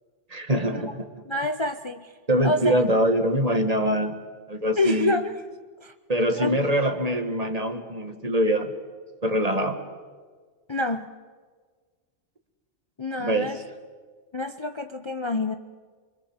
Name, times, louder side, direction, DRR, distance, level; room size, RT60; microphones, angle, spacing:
voice 1, 0.3-1.1 2.3-4.2 4.5-5.2 6.1-8.7 9.2-9.8 13.2-13.6, equal, 30° right, 6 dB, 1.9 m, -24 dB
voice 2, 1.3-2.1 2.4-2.8 4.8-5.4 5.8-5.9 6.3-6.6 10.7-11.1 13.0-13.6 14.3-15.6, left 2 dB, 25° left, 6 dB, 0.8 m, -27 dB
25.0 x 24.5 x 7.3 m, 1.5 s
omnidirectional pair, 1.2 m